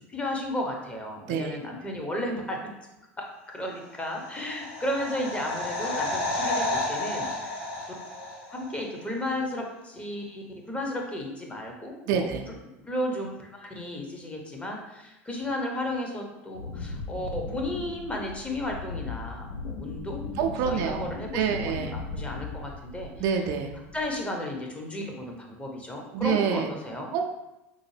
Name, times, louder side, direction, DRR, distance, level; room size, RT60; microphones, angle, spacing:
voice 1, 0.1-2.6 3.2-3.3 3.5-12.3 12.9-20.4 20.6-23.4 23.9-27.1, left 1 dB, 15° left, 1 dB, 0.7 m, -34 dB
voice 2, 1.3-1.6 12.1-12.4 20.4-21.1 21.3-21.9 23.2-23.7 26.1-26.7 27.1-27.2, right 7 dB, 60° right, 4 dB, 0.4 m, -27 dB
sound 1, 4.0-8.8 9.1-9.2, left 2 dB, 70° left, 0.9 m, -31 dB
Wind, 16.5-23.4 23.7-24.2, left 3 dB, 85° left, 0.5 m, -37 dB
3.7 x 2.1 x 3.2 m, 0.96 s
hypercardioid pair, 85°, 7 cm